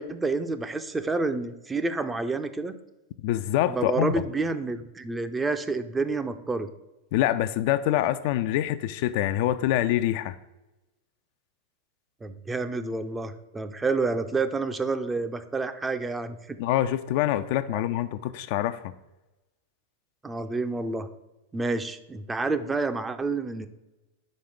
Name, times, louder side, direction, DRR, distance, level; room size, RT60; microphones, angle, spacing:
voice 1, 0.0-2.7 3.7-6.7 12.2-16.6 17.7-17.8 20.2-21.1 21.5-23.7, right 3 dB, 10° right, 0.5 m, -29 dB
voice 2, 3.2-4.1 7.1-10.4 16.6-18.9, left 13 dB, 50° left, 0.3 m, -25 dB
5.2 x 4.8 x 5.9 m
figure-of-eight pair, 90°, 0 cm